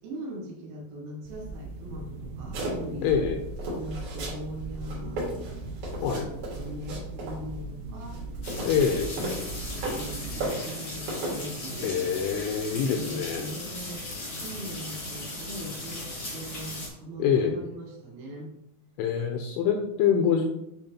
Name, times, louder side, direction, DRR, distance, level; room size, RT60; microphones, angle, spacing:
voice 1, 0.0-3.1 3.7-5.3 6.0-8.2 8.9-11.9 12.9-14.1 14.3-18.5, right 1 dB, 75° right, -2 dB, 3.8 m, -40 dB
sound 1, 1.2-10.5, right 2 dB, 90° right, 2.6 m, -39 dB
sound 2, 2.5-3.1 3.6-4.4 4.7-7.4 8.0-10.1 10.4-11.4, right 1 dB, 55° right, 3.2 m, -35 dB
voice 2, 3.0-3.4 6.0-6.3 8.6-9.1 11.8-13.5 17.2-17.6 19.0-20.5, left 7 dB, 85° left, 4 dB, 2.8 m, -25 dB
sound 3, 8.4-16.9, left 2 dB, 50° left, 1.4 m, -37 dB
10.0 x 3.5 x 2.9 m, 0.81 s
omnidirectional pair, 6.0 m